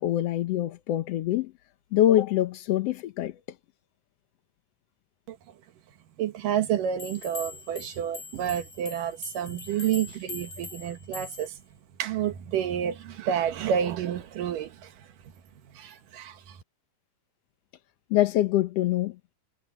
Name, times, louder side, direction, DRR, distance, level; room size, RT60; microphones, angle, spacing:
voice 1, 0.0-1.5 1.9-3.4 18.1-19.2, left 13 dB, 70° left, 1.6 m, -24 dB
voice 2, 6.2-11.6 12.0-15.1 15.7-16.6, right 9 dB, 85° right, 3.0 m, -29 dB
sound 1, 7.0-11.6, left 4 dB, 40° left, 2.1 m, -43 dB
omnidirectional pair, 3.7 m